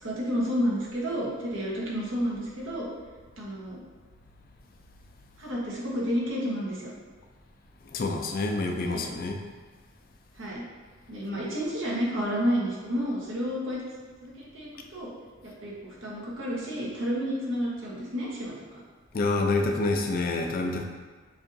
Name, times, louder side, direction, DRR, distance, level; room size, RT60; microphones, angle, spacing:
voice 1, 0.0-2.9 3.4-3.8 5.4-6.9 8.8-9.1 10.3-10.6 11.1-13.8 14.2-15.1 15.4-18.8, equal, 80° right, -5 dB, 1.2 m, -30 dB
voice 2, 7.9-9.4 19.1-20.8, left 2 dB, 45° left, 3 dB, 0.4 m, -27 dB
6.9 x 2.8 x 2.6 m, 1.4 s
head